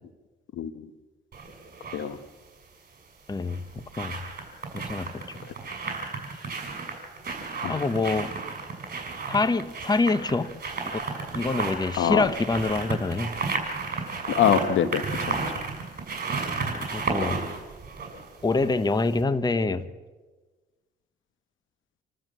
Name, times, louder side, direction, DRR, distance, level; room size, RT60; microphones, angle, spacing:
sound 1, 1.3-2.1 3.3-18.8 19.1-19.2, right 4 dB, 45° right, 6.2 m, -33 dB
voice 1, 3.3-4.2 4.7-5.4 7.7-8.3 9.3-10.5 10.9-11.0 11.3-13.4 16.6-17.4 18.4-19.9, left 3 dB, 20° left, 0.9 m, -26 dB
voice 2, 14.3-15.4, left 9 dB, 80° left, 1.4 m, -24 dB
27.5 x 13.5 x 7.4 m
cardioid pair, 90°, 20 cm